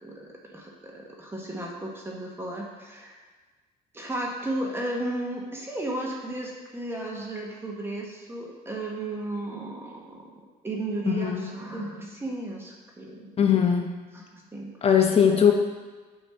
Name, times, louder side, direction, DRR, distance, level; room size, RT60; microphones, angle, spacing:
voice 1, 0.0-3.2 3.9-10.3 10.6-13.3 14.1-15.4, right 1 dB, 15° right, -2 dB, 1.3 m, -34 dB
voice 2, 11.1-11.5 13.4-13.9 14.8-15.5, left 8 dB, 35° left, 3 dB, 1.0 m, -20 dB
9.1 x 3.2 x 5.6 m, 1.3 s
cardioid pair, 110°, 17 cm